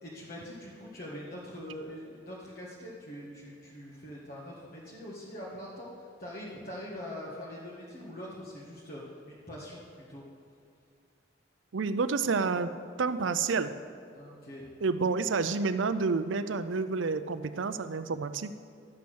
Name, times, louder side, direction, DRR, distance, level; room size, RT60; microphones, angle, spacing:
voice 1, 0.0-10.2 14.1-14.7, left 1 dB, 50° left, -6 dB, 1.8 m, -43 dB
voice 2, 11.7-12.7 13.0-13.7 14.8-18.5, right 4 dB, 85° right, 12 dB, 0.5 m, -29 dB
12.5 x 8.5 x 6.4 m, 2.4 s
head